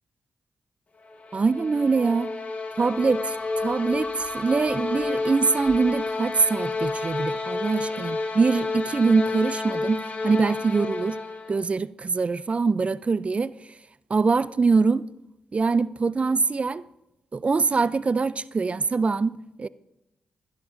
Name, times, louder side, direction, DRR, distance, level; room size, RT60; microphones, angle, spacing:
sound 1, 1.0-11.6, left 3 dB, 45° left, 1.5 m, -30 dB
voice 1, 1.3-2.3 2.8-11.2 11.5-13.5 14.1-15.1 15.5-16.9 17.3-19.7, right 4 dB, 40° right, 0.3 m, -23 dB
sound 2, 2.8-9.1, equal, 10° left, 2.7 m, -44 dB
12.5 x 12.0 x 2.5 m
supercardioid pair, 45°, 3 cm